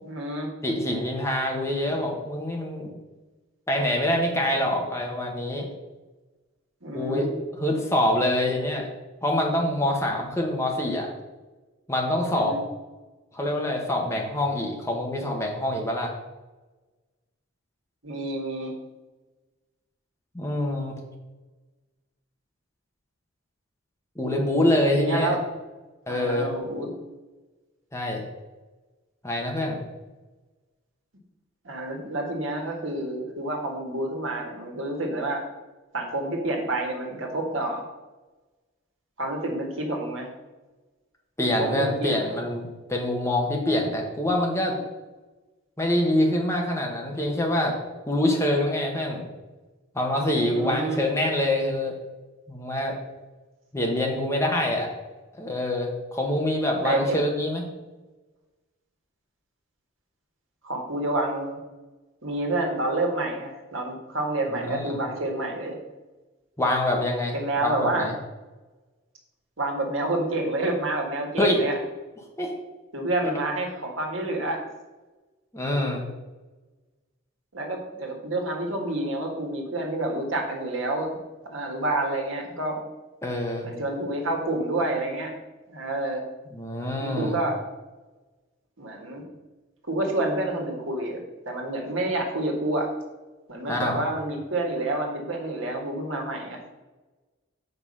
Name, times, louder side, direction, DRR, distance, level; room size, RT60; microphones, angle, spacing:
voice 1, 0.0-0.5 6.8-7.4 12.3-12.7 18.0-18.7 25.0-25.4 26.1-26.9 31.6-35.4 35.9-37.9 39.2-40.3 41.6-42.2 50.5-51.0 56.8-57.2 60.6-61.6 62.2-65.8 67.3-68.1 69.6-71.8 72.9-74.6 77.5-81.1 81.5-82.8 83.6-85.3 85.7-86.2 87.0-87.6 88.8-89.2 89.9-91.2 91.5-92.9 93.5-96.6, right 2 dB, 70° right, 1 dB, 1.8 m, -28 dB
voice 2, 0.6-2.9 3.7-5.7 6.9-7.3 7.5-8.9 9.2-11.1 11.9-12.6 13.3-16.1 20.3-20.9 24.2-25.3 26.1-26.5 27.9-28.2 29.2-29.8 41.4-44.8 45.8-47.8 48.1-49.3 49.9-52.0 52.5-53.0 53.7-54.9 55.3-57.7 64.5-65.0 66.6-68.1 71.4-71.6 72.4-72.5 75.5-76.0 83.2-83.7 86.5-87.3 93.7-94.0, left 1 dB, 15° left, 0 dB, 1.2 m, -25 dB
7.1 x 5.4 x 5.5 m, 1.2 s
head